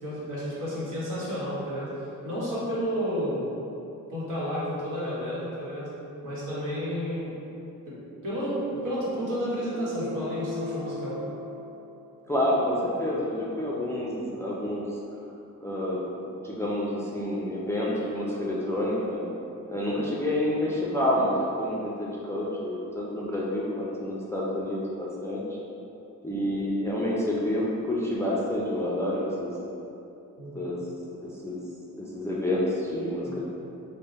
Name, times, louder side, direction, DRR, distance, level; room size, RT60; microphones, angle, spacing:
voice 1, 0.0-1.9 2.2-3.4 4.1-5.9 6.2-7.3 7.9-8.0 8.2-8.6 8.8-11.2 30.4-30.7 33.2-33.4, equal, 65° right, -8 dB, 1.3 m, -31 dB
sound 1, 9.7-12.3, left 3 dB, 35° right, 0.9 m, -38 dB
voice 2, 12.3-14.9 15.6-16.0 16.4-19.2 19.7-25.6 26.2-29.5 30.5-30.8 31.4-31.6 32.0-33.4, left 1 dB, 10° left, -6 dB, 0.4 m, -28 dB
3.5 x 2.2 x 4.0 m, 2.8 s
cardioid pair, 100°, 34 cm